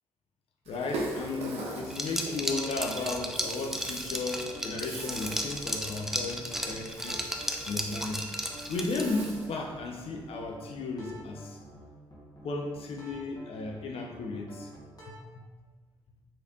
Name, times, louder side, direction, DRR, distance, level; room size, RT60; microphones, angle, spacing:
Rattle (instrument), 0.6-9.6, right 2 dB, 65° right, 0.6 m, -42 dB
voice 1, 0.7-8.3 8.7-11.6 12.4-14.7 15.1-15.4, left 3 dB, 60° left, 1 dB, 0.5 m, -35 dB
sound 1, 1.2-15.1, equal, 35° left, 1.1 m, -49 dB
Liquid, 1.9-9.3, equal, 5° right, 0.4 m, -34 dB
3.2 x 2.8 x 2.4 m, 1.4 s
hypercardioid pair, 45°, 12 cm